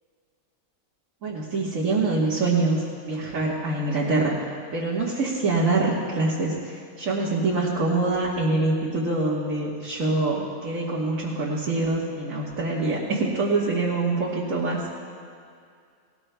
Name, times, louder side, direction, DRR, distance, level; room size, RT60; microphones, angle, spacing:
voice 1, 1.2-4.4 4.7-14.8, right 3 dB, 65° right, -6 dB, 1.8 m, -25 dB
18.5 x 18.5 x 2.2 m, 2.3 s
omnidirectional pair, 1.5 m